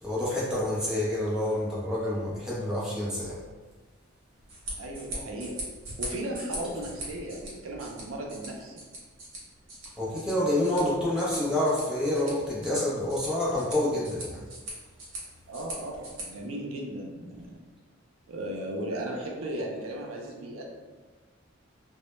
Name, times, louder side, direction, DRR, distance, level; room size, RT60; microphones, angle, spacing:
voice 1, 0.0-3.4 10.0-14.5, left 1 dB, 5° right, -8 dB, 0.5 m, -28 dB
sound 1, 4.3-16.2, right 1 dB, 70° right, 0.8 m, -42 dB
voice 2, 4.8-5.6 6.0-8.8 15.5-17.6 18.3-20.7, right 1 dB, 90° right, 0 dB, 0.4 m, -36 dB
2.1 x 2.0 x 3.0 m, 1.3 s
head